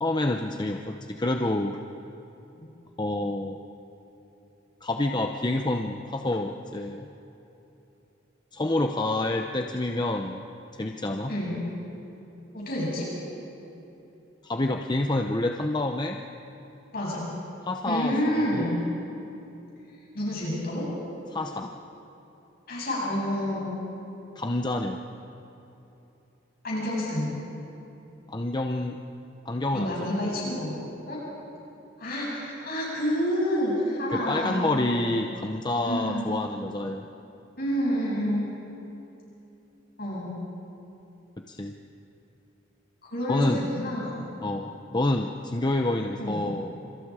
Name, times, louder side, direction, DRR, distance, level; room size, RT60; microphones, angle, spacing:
voice 1, 0.0-1.8 3.0-3.6 4.8-7.1 8.5-10.4 10.7-11.3 14.4-16.2 17.7-18.2 18.5-18.8 21.3-21.8 24.4-25.0 28.3-29.0 29.4-29.9 30.2-30.4 34.1-37.1 41.4-41.7 43.3-43.6 44.4-46.9, left 2 dB, 25° left, 3 dB, 0.8 m, -28 dB
voice 2, 12.5-13.1 16.9-17.3 17.9-18.8 20.1-20.9 22.7-23.7 26.6-27.3 29.7-30.7 31.1-31.2 32.0-35.1 35.8-36.3 37.6-38.5 40.0-40.3 43.0-44.1 46.2-46.4, equal, 50° left, -5 dB, 7.8 m, -28 dB
29.0 x 26.5 x 5.0 m, 3.0 s
head